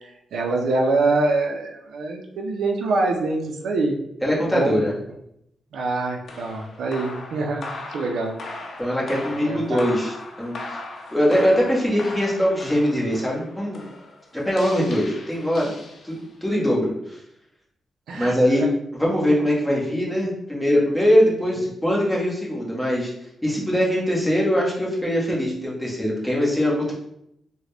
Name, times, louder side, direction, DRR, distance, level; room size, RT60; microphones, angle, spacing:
voice 1, 0.0-3.9 4.5-4.8 5.7-8.4 9.4-9.8 18.1-18.4 18.6-18.7 21.5-21.6, right 3 dB, 90° right, 2 dB, 0.5 m, -25 dB
voice 2, 4.2-4.9 8.8-10.8 11.1-13.9 14.3-15.7 16.0-17.2 18.1-18.6 18.9-23.1 23.4-26.9, equal, 5° left, -4 dB, 1.1 m, -22 dB
sound 1, 6.2-16.4, left 2 dB, 60° left, 0.6 m, -38 dB
3.7 x 2.2 x 3.3 m, 0.77 s
cardioid pair, 95°, 0 cm